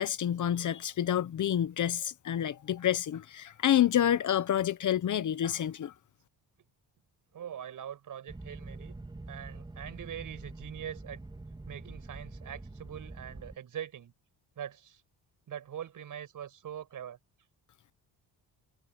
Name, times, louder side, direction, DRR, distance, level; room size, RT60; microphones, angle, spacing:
voice 1, 0.0-5.9, left 10 dB, 50° left, 1.0 m, -28 dB
voice 2, 7.3-9.0 9.3-11.2 11.7-14.1 14.6-15.0 15.5-17.2, right 9 dB, 50° right, 6.2 m, -43 dB
sound 1, 8.3-13.6, right 2 dB, 10° right, 2.7 m, -45 dB
cardioid pair, 145°, 40 cm